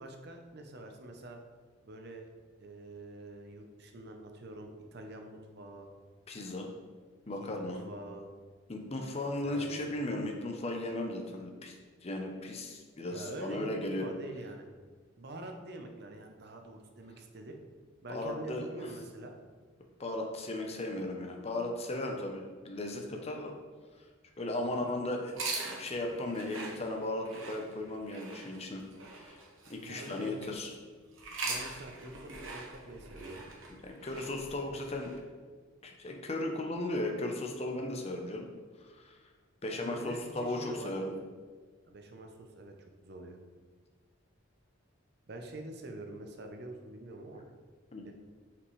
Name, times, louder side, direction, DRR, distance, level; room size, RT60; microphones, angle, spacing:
voice 1, 0.0-1.4 1.8-2.3 2.6-5.9 7.4-8.3 9.4-9.7 13.1-14.6 15.2-17.6 18.0-19.3 24.5-24.8 29.8-30.3 31.4-33.5 39.7-40.9 41.9-42.7 43.0-43.4 45.3-47.4 48.0-48.1, right 1 dB, 55° right, 4 dB, 0.7 m, -46 dB
voice 2, 6.3-6.7 7.3-7.8 8.7-14.1 18.1-18.9 20.0-23.5 23.9-24.1 24.4-28.8 29.2-29.4 29.7-30.7 33.8-35.3 35.8-38.5 38.8-39.3 39.6-41.2 47.9-48.0, left 1 dB, 30° left, 2 dB, 0.7 m, -36 dB
sound 1, 25.3-30.6 31.1-35.2, right 3 dB, 75° right, 1.2 m, -42 dB
5.7 x 5.2 x 3.2 m, 1.5 s
head